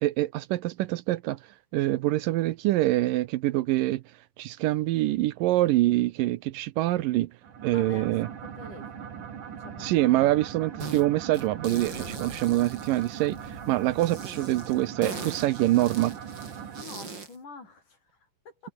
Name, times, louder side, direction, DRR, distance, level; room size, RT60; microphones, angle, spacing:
voice 1, 0.0-1.4 1.7-4.0 4.4-7.3 7.6-8.3 9.8-16.2, right 16 dB, 80° right, 2.3 m, -25 dB
sound 1, 7.4-16.8, right 7 dB, 65° right, 4.2 m, -40 dB
voice 2, 7.7-8.2 8.5-9.3 9.6-10.1 16.8-18.7, left 4 dB, 60° left, 7.8 m, -47 dB
sound 2, 10.8-11.0 11.3-13.5 14.0-17.4, right 4 dB, 30° right, 4.0 m, -40 dB
sound 3, 10.9-15.9, left 3 dB, 30° left, 4.2 m, -54 dB
omnidirectional pair, 4.1 m